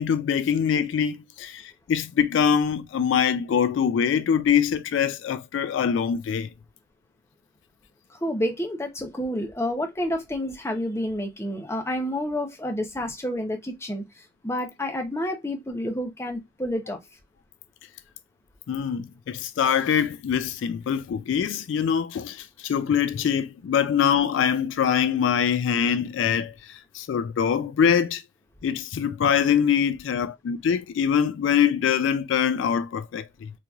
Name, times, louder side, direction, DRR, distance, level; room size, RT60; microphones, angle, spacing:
voice 1, 0.0-1.6 1.9-6.5 18.7-28.2 28.6-33.5, left 7 dB, 75° left, 0.3 m, -24 dB
voice 2, 8.2-14.0 14.4-17.0, left 1 dB, 15° left, 0.7 m, -29 dB
3.9 x 2.9 x 2.3 m
head